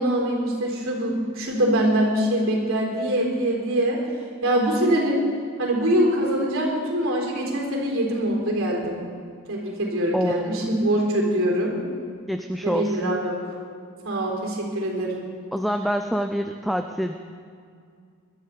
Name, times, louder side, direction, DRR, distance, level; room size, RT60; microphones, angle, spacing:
voice 1, 0.0-4.0 4.4-5.3 5.6-9.0 9.5-11.7 12.6-13.4 14.0-15.2, right 1 dB, 65° right, -1 dB, 3.7 m, -23 dB
voice 2, 10.1-10.7 12.3-13.2 15.5-17.1, equal, ahead, 6 dB, 0.3 m, -26 dB
20.5 x 12.5 x 4.1 m, 2.2 s
head